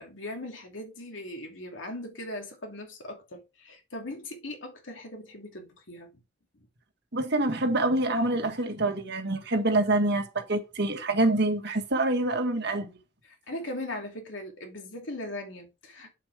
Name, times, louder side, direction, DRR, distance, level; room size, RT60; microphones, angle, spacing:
voice 1, 0.0-6.2 6.5-6.7 13.2-16.2, left 1 dB, 90° left, 2.8 m, -39 dB
voice 2, 7.1-12.9, right 2 dB, 60° right, 1.7 m, -26 dB
8.0 x 7.4 x 3.4 m
head